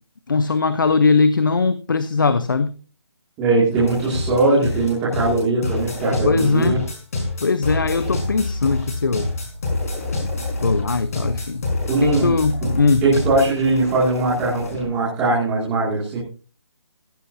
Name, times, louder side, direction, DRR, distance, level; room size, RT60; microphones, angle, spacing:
voice 1, 0.3-2.7 6.2-6.9 7.4-9.3 10.6-11.6 12.0-13.0, left 4 dB, 50° left, 0.9 m, -20 dB
voice 2, 3.4-6.8 11.9-12.3 13.0-16.2, right 2 dB, 10° right, 2.4 m, -20 dB
sound 1, 3.8-14.9, left 2 dB, 35° left, 4.9 m, -27 dB
15.0 x 14.0 x 2.7 m
hypercardioid pair, 180°, 14 cm